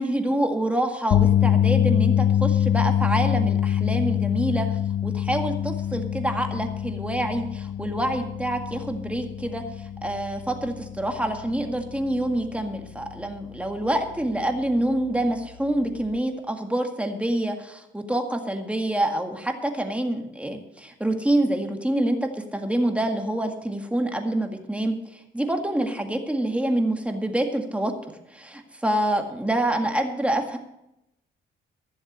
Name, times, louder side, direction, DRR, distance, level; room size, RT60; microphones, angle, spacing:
voice 1, 0.0-9.6 10.0-27.9 28.3-30.6, right 1 dB, 5° right, 4 dB, 1.9 m, -26 dB
sound 1, 1.1-13.4 13.7-14.0 16.1-16.2, left 10 dB, 70° left, 0.9 m, -25 dB
14.5 x 7.4 x 6.8 m, 0.85 s
cardioid pair, 90°, 20 cm